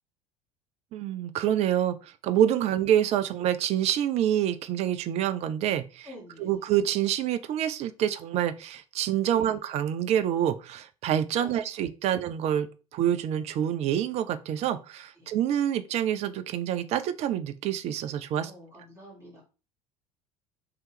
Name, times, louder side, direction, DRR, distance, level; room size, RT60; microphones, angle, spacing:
voice 1, 0.9-6.1 6.4-12.7 12.9-18.5, right 10 dB, 35° right, 0.4 m, -27 dB
voice 2, 6.0-6.7 9.3-9.5 11.4-11.5 15.2-15.3 18.4-19.4, right 1 dB, 15° right, 1.9 m, -48 dB
3.0 x 2.8 x 3.2 m
figure-of-eight pair, 65°, 19 cm